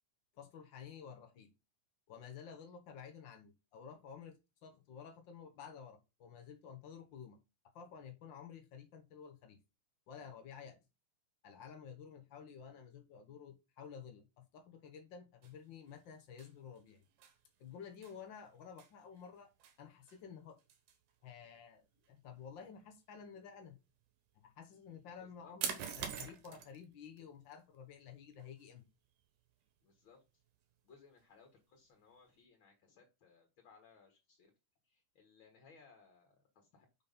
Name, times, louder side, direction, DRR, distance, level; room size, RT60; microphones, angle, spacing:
voice 1, 0.4-1.5 2.1-7.4 7.7-9.6 10.1-10.8 11.4-17.0 17.6-19.5 19.8-20.6 21.2-23.8 24.3-28.8, left 7 dB, 90° left, 5 dB, 1.0 m, -52 dB
sound 1, 15.4-32.4, right 8 dB, 80° right, 2.8 m, -50 dB
voice 2, 25.2-25.5 29.8-30.4 30.8-34.5 34.8-36.9, left 5 dB, 50° left, 4 dB, 1.9 m, -64 dB
6.2 x 5.5 x 5.4 m, 0.27 s
omnidirectional pair, 3.7 m